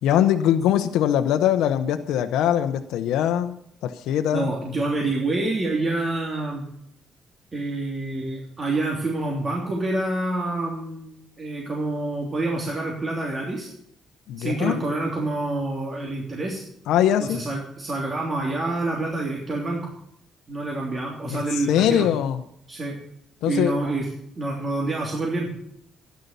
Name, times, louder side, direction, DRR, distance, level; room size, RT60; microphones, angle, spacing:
voice 1, 0.0-3.5 3.8-4.5 14.3-14.8 16.9-17.4 21.3-22.4 23.4-23.7, left 10 dB, 90° left, 7 dB, 0.8 m, -22 dB
voice 2, 4.3-6.6 7.5-13.7 14.4-16.6 17.2-19.9 20.5-22.1 22.7-23.0 23.5-24.1 24.4-25.5, right 2 dB, 35° right, -2 dB, 3.2 m, -27 dB
12.5 x 10.5 x 6.8 m, 0.71 s
cardioid pair, 90°, 0 cm